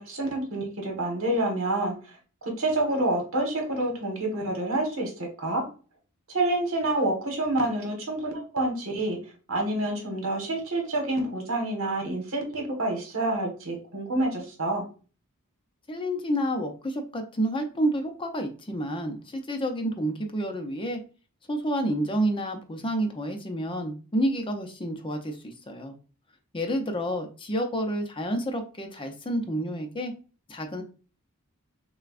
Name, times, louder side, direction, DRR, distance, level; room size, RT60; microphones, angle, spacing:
voice 1, 0.1-2.0 2.4-5.6 6.3-9.2 9.5-14.8, right 1 dB, 70° right, 2 dB, 1.5 m, -28 dB
voice 2, 15.9-21.0 21.5-25.9 26.5-30.1 30.5-30.8, right 1 dB, 25° left, 5 dB, 0.6 m, -29 dB
6.5 x 2.3 x 2.5 m, 0.36 s
head